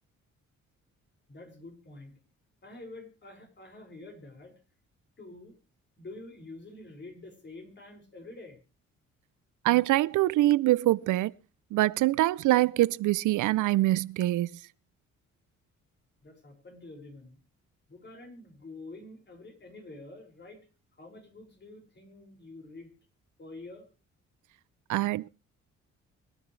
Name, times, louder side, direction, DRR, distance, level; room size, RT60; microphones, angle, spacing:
voice 1, 1.3-2.2 2.6-4.5 5.2-5.5 6.0-8.6 16.2-17.4 17.9-20.6 21.0-22.9 23.4-23.8, left 2 dB, 35° left, 6.0 m, -47 dB
voice 2, 9.6-11.3 11.7-14.6 24.9-25.3, right 16 dB, 80° right, 0.6 m, -24 dB
25.0 x 10.0 x 3.3 m
cardioid pair, 90°, 30 cm